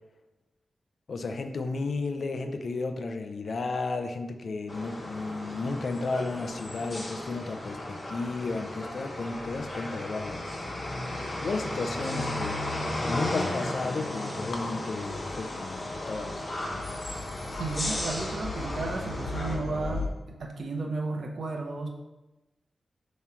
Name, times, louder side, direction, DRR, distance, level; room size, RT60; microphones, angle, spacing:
voice 1, 1.1-10.7 11.4-12.6 13.1-16.8, left 3 dB, 55° left, 6 dB, 0.5 m, -33 dB
sound 1, 4.7-19.6, left 1 dB, 30° left, 1.2 m, -35 dB
sound 2, 12.2-20.1, left 2 dB, 80° left, 0.9 m, -39 dB
voice 2, 17.6-21.9, right 3 dB, 70° right, 2 dB, 0.9 m, -33 dB
7.4 x 3.1 x 5.8 m, 1.1 s
wide cardioid pair, 170°, 0 cm